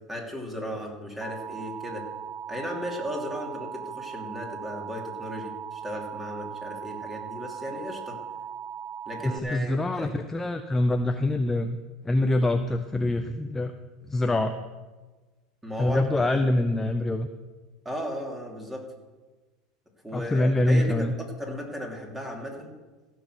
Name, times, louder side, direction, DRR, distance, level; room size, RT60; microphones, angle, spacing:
voice 1, 0.1-2.1 2.5-8.2 9.1-10.1 15.6-16.0 16.3-16.5 17.8-18.9 20.0-22.7, equal, 10° right, 0 dB, 2.9 m, -36 dB
Alarm, 1.2-9.4, right 8 dB, 40° right, 0.8 m, -38 dB
voice 2, 9.2-11.8 12.0-13.7 14.0-14.5 15.8-17.3 20.1-21.1, left 1 dB, 10° left, 7 dB, 0.7 m, -25 dB
15.5 x 6.3 x 6.3 m, 1.3 s
hypercardioid pair, 100°, 3 cm